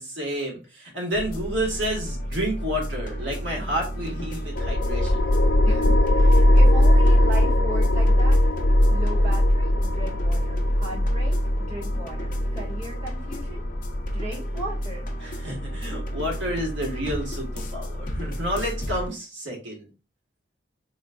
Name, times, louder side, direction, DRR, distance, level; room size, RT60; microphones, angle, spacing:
voice 1, 0.0-5.3 15.2-19.9, equal, 85° right, 0 dB, 1.5 m, -30 dB
sound 1, 1.1-19.1, equal, 45° left, 0.7 m, -32 dB
sound 2, 4.6-15.6, left 1 dB, 80° left, 0.6 m, -20 dB
voice 2, 5.6-8.4 8.9-11.4 11.7-13.6 14.1-15.1, right 2 dB, 40° right, -6 dB, 1.6 m, -37 dB
3.9 x 3.1 x 2.3 m, 0.31 s
head